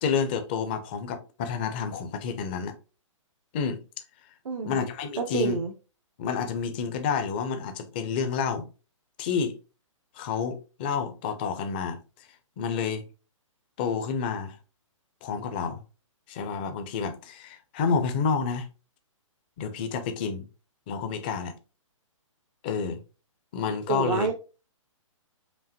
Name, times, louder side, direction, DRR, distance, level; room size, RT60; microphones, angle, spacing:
voice 1, 0.0-2.8 3.5-3.8 4.6-5.6 6.2-8.6 9.2-9.5 10.1-12.0 12.6-13.0 13.8-14.6 15.2-15.8 16.3-18.7 19.6-20.5 20.9-21.5 22.6-23.0 23.5-24.3, left 6 dB, 20° left, 0.4 m, -29 dB
voice 2, 4.4-4.8 5.2-5.7 23.9-24.3, right 5 dB, 85° right, 0.8 m, -28 dB
5.0 x 2.7 x 2.7 m
hypercardioid pair, 160°, 17 cm